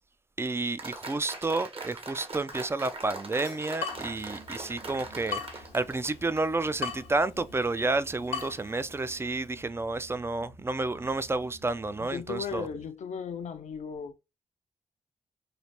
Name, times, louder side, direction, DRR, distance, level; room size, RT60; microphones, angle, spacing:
voice 1, 0.4-12.7, right 3 dB, 20° right, 0.4 m, -30 dB
Applause, 0.8-6.7, right 3 dB, 45° right, 1.1 m, -41 dB
Water tap faucet / Drip, 2.5-9.5, left 6 dB, 90° left, 0.8 m, -41 dB
sound 1, 3.9-12.9, right 1 dB, 90° right, 1.5 m, -53 dB
voice 2, 12.0-14.2, left 6 dB, 65° left, 0.5 m, -36 dB
3.2 x 2.5 x 2.8 m
supercardioid pair, 40°, 13 cm